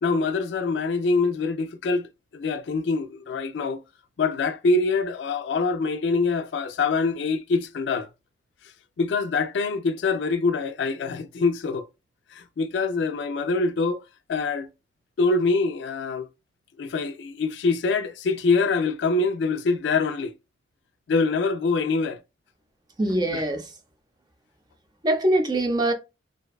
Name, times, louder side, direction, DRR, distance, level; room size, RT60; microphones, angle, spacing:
voice 1, 0.0-3.8 4.2-8.1 9.0-11.9 12.3-14.0 14.3-14.7 15.2-16.3 16.8-20.3 21.1-22.2 23.3-23.4, left 4 dB, 80° left, 0.4 m, -24 dB
voice 2, 23.0-23.7 25.0-25.9, right 1 dB, 25° right, 0.5 m, -23 dB
2.6 x 2.2 x 2.3 m
head